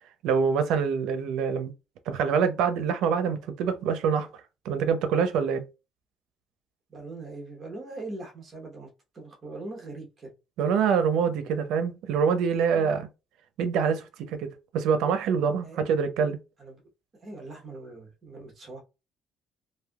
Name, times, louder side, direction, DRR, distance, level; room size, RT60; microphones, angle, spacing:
voice 1, 0.2-1.7 2.1-4.3 4.6-5.6 10.6-13.1 13.6-14.5 14.7-16.4, right 6 dB, 85° right, 0.5 m, -25 dB
voice 2, 6.9-10.3 15.6-15.8 16.6-16.8 17.2-18.8, right 2 dB, 25° right, 1.0 m, -41 dB
3.3 x 2.6 x 2.3 m
cardioid pair, 175°, 0 cm